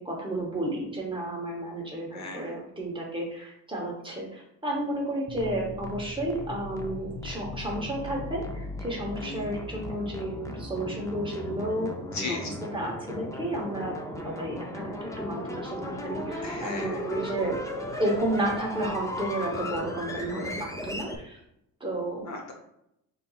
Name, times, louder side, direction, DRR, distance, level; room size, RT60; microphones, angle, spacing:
voice 1, 0.0-11.9 12.2-12.4 12.7-13.9 14.2-17.6 18.0-21.4 21.8-22.3, right 1 dB, 15° right, -2 dB, 1.0 m, -32 dB
voice 2, 2.1-2.6 9.2-9.5 12.1-12.5 16.1-16.2 16.4-17.1 22.2-22.5, left 3 dB, 45° left, 2 dB, 0.8 m, -36 dB
sound 1, 5.3-21.2, left 1 dB, 10° left, 0.3 m, -37 dB
5.4 x 3.9 x 2.4 m, 0.79 s
cardioid pair, 145°, 39 cm